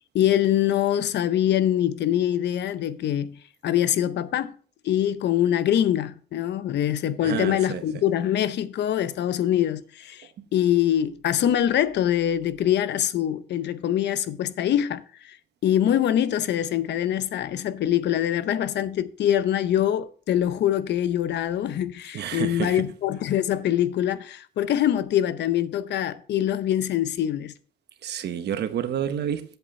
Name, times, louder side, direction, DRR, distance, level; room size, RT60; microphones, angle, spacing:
voice 1, 0.1-3.4 3.6-4.6 4.8-15.4 15.6-27.5, left 11 dB, 75° left, 0.7 m, -24 dB
voice 2, 7.2-8.0 22.1-22.8 28.0-29.6, right 9 dB, 70° right, 0.9 m, -29 dB
8.0 x 7.9 x 4.2 m
wide cardioid pair, 180°, 18 cm